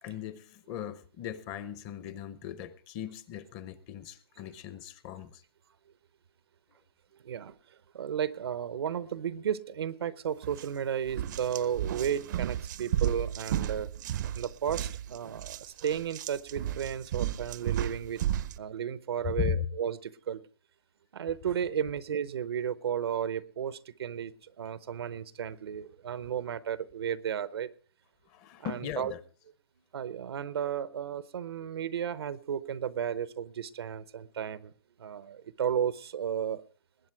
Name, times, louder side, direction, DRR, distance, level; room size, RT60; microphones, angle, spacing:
voice 1, 0.0-5.4 19.3-19.7 28.3-29.2, left 10 dB, 25° left, 0.7 m, -37 dB
voice 2, 7.9-13.9 14.3-18.2 18.6-20.4 21.1-27.7 28.6-29.1 29.9-34.7 35.0-36.6, right 8 dB, 85° right, 0.8 m, -33 dB
sound 1, 10.4-10.7 11.1-18.6, right 11 dB, 50° right, 0.6 m, -33 dB
20.0 x 8.5 x 4.6 m
hypercardioid pair, 160°, 13 cm